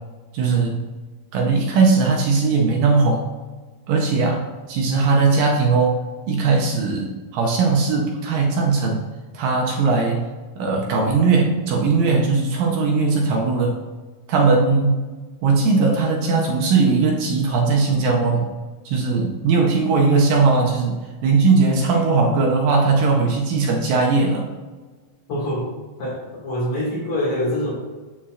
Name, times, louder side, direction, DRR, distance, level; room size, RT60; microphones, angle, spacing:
voice 1, 0.3-0.8 1.3-3.3 3.9-6.0 6.3-9.0 9.3-10.2 10.6-13.8 14.3-15.0 15.4-18.5 18.9-24.5, right 4 dB, 75° right, 0 dB, 2.3 m, -19 dB
voice 2, 25.3-25.7 26.0-27.7, left 1 dB, 50° left, -7 dB, 3.1 m, -25 dB
12.5 x 4.4 x 2.5 m, 1.3 s
omnidirectional pair, 4.3 m